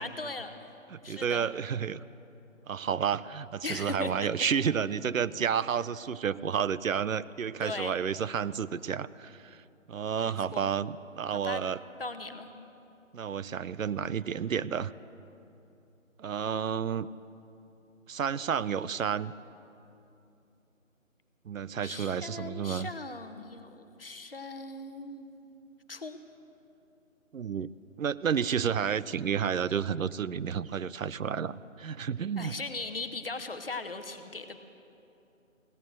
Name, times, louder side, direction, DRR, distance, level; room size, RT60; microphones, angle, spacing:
voice 1, 0.0-0.7 1.0-1.4 3.6-4.3 7.6-8.0 10.1-10.7 11.3-11.6 12.0-12.5 21.8-25.3 25.9-26.2 32.4-34.6, left 3 dB, 45° left, 8 dB, 0.9 m, -39 dB
voice 2, 0.9-2.0 2.7-9.6 9.9-11.8 13.1-14.9 16.2-17.1 18.1-19.3 21.5-22.9 27.3-27.7 28.0-32.6, right 7 dB, 75° right, 18 dB, 0.6 m, -31 dB
16.5 x 11.0 x 7.8 m, 2.8 s
figure-of-eight pair, 175°, 40 cm